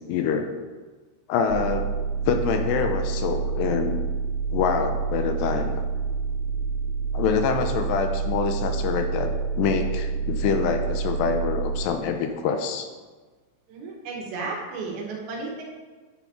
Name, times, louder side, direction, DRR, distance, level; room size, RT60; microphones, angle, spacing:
voice 1, 0.1-0.5 1.3-1.9 2.2-4.0 4.5-5.8 7.1-9.3 9.6-12.9, left 6 dB, 75° left, 5 dB, 2.9 m, -25 dB
sound 1, 1.5-11.9, right 5 dB, 90° right, 3.3 m, -28 dB
voice 2, 13.7-15.6, right 3 dB, 70° right, -1 dB, 4.2 m, -33 dB
11.0 x 9.7 x 4.9 m, 1.4 s
omnidirectional pair, 5.4 m